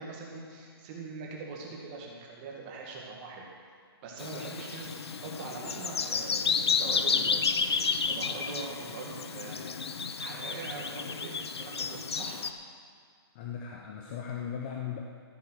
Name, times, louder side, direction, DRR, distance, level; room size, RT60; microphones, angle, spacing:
voice 1, 0.0-3.5 4.0-12.4, right 4 dB, 20° right, -2 dB, 1.8 m, -42 dB
Bird vocalization bird call bird song, 4.2-12.5, left 5 dB, 85° left, 0.8 m, -31 dB
voice 2, 13.3-15.0, left 8 dB, 20° left, 0 dB, 0.6 m, -37 dB
13.5 x 8.0 x 6.4 m, 2.1 s
hypercardioid pair, 170°, 13 cm